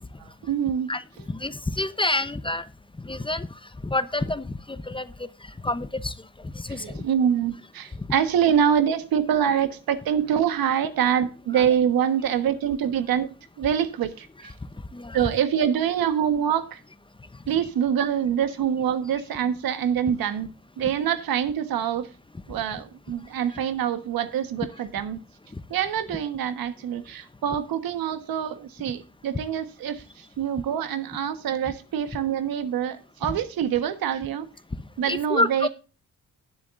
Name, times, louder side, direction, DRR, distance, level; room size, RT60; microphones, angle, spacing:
voice 1, 0.2-0.9 6.7-14.5 15.1-16.8 17.5-22.1 22.5-25.2 25.7-30.0 30.4-34.5 35.0-35.7, right 9 dB, 85° right, 1.4 m, -25 dB
voice 2, 1.3-2.6 3.0-3.5 3.8-4.4 4.9-5.1 5.6-6.1 6.6-7.0 11.5-11.6 14.9-15.2 35.1-35.7, left 2 dB, 15° left, 0.8 m, -27 dB
19.0 x 7.3 x 2.6 m
cardioid pair, 70°, 34 cm